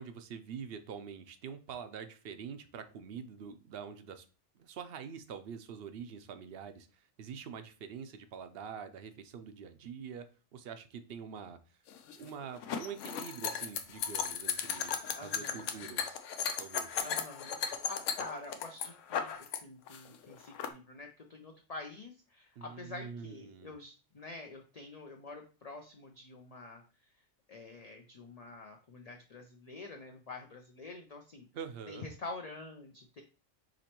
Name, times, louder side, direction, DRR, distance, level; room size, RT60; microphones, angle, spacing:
voice 1, 0.0-4.3 4.6-10.3 10.5-11.6 12.2-16.2 16.6-17.0 22.6-23.7 31.5-32.1, right 7 dB, 60° right, 9 dB, 0.7 m, -45 dB
sound 1, 11.9-19.6 19.9-20.7, left 7 dB, 80° left, 0.9 m, -36 dB
voice 2, 15.1-16.0 17.0-26.8 27.5-31.5 31.9-33.2, left 3 dB, 50° left, 3 dB, 0.5 m, -47 dB
5.1 x 3.1 x 2.9 m, 0.35 s
omnidirectional pair, 1.3 m